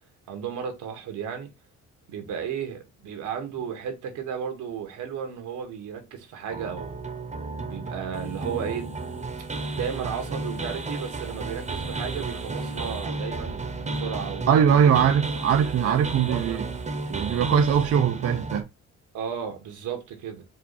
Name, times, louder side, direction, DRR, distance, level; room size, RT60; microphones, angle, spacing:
voice 1, 0.3-1.5 2.1-7.0 7.7-8.9 9.7-15.0 15.6-16.6 19.1-20.4, right 7 dB, 85° right, 1.5 m, -34 dB
sound 1, 6.5-18.6, right 3 dB, 25° right, 0.9 m, -32 dB
voice 2, 14.5-16.6 17.1-18.7, right 8 dB, 55° right, 0.5 m, -21 dB
4.7 x 2.5 x 4.0 m
cardioid pair, 90°, 30 cm